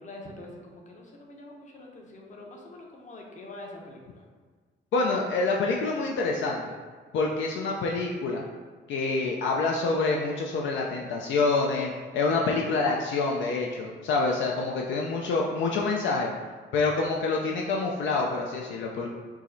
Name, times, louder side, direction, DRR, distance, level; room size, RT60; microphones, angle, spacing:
voice 1, 0.0-4.2 14.9-15.6, left 2 dB, 40° left, 0 dB, 0.7 m, -45 dB
voice 2, 4.9-6.6 7.1-8.4 8.9-16.3 16.7-19.1, left 3 dB, 70° left, -1 dB, 0.4 m, -27 dB
4.6 x 2.0 x 2.6 m, 1.5 s
cardioid pair, 90°, 20 cm